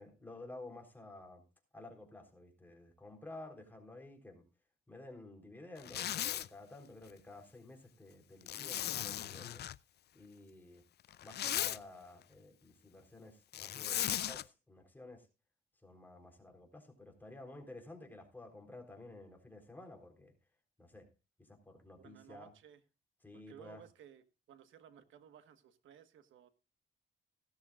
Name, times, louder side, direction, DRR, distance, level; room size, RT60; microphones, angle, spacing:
voice 1, 0.0-1.4 1.7-4.5 4.9-9.6 10.1-10.8 11.2-15.3 15.8-20.3 20.8-21.1 21.4-22.5 23.2-23.8, left 2 dB, 10° left, 3 dB, 3.9 m, -52 dB
Zipper (clothing), 5.8-6.5 8.5-9.8 11.1-11.8 13.5-14.4, left 11 dB, 55° left, 0.5 m, -37 dB
voice 2, 22.0-22.8 23.3-26.5, right 9 dB, 75° right, 11 dB, 1.4 m, -58 dB
16.5 x 13.0 x 2.4 m, 0.29 s
cardioid pair, 90°, 20 cm